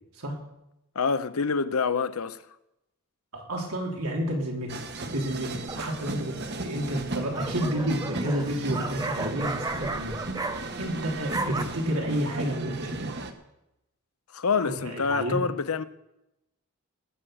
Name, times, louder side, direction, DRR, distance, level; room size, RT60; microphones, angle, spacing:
voice 1, 0.9-2.4 14.3-15.8, left 5 dB, 80° left, 0.7 m, -26 dB
voice 2, 3.3-10.2 10.6-13.1 14.5-15.4, right 1 dB, 90° right, 3.4 m, -31 dB
sound 1, 4.7-13.3, right 2 dB, 50° right, 1.2 m, -35 dB
sound 2, 5.7-6.1 7.0-10.9 11.2-11.6, right 3 dB, 15° right, 0.6 m, -34 dB
19.0 x 6.4 x 7.8 m
head